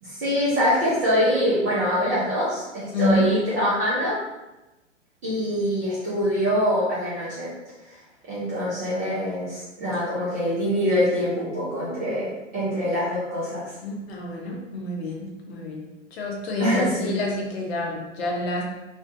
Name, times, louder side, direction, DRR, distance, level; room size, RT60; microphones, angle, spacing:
voice 1, 0.0-4.2 5.2-7.5 8.3-13.7 16.6-17.2, equal, 15° right, -10 dB, 0.4 m, -24 dB
voice 2, 2.9-3.3 13.8-15.8 16.1-18.7, left 1 dB, 55° left, -1 dB, 0.7 m, -28 dB
2.5 x 2.1 x 2.6 m, 1.0 s
figure-of-eight pair, 115°, 38 cm